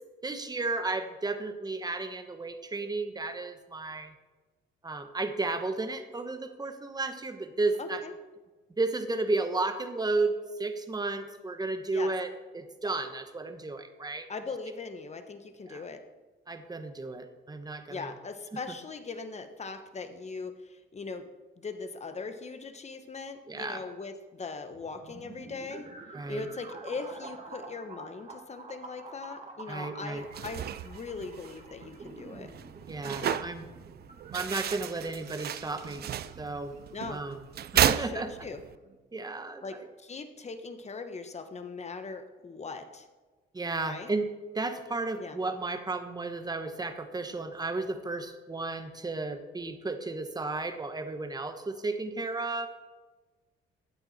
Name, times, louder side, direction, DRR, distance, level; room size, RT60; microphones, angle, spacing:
voice 1, 0.2-4.1 4.8-8.0 8.8-10.3 10.6-12.3 12.5-14.3 15.7-15.8 16.5-18.1 18.5-18.6 23.5-23.8 26.1-26.5 29.7-30.2 32.9-33.6 34.3-36.0 36.4-36.7 37.1-37.4 37.7-38.3 39.1-39.9 43.5-44.3 44.5-52.7, right 3 dB, 20° right, 8 dB, 1.2 m, -33 dB
voice 2, 7.8-8.1 11.9-12.1 14.3-16.0 17.9-21.3 21.6-25.9 26.3-32.5 33.2-33.4 36.9-37.2 37.7-38.6 39.6-43.1 43.8-44.1 45.2-45.4, left 4 dB, 35° left, 8 dB, 1.3 m, -40 dB
sound 1, 24.7-39.0, right 3 dB, 40° right, 1.9 m, -49 dB
sound 2, 30.2-38.8, right 10 dB, 55° right, 0.5 m, -33 dB
15.0 x 9.0 x 4.3 m, 1.3 s
cardioid pair, 90°, 20 cm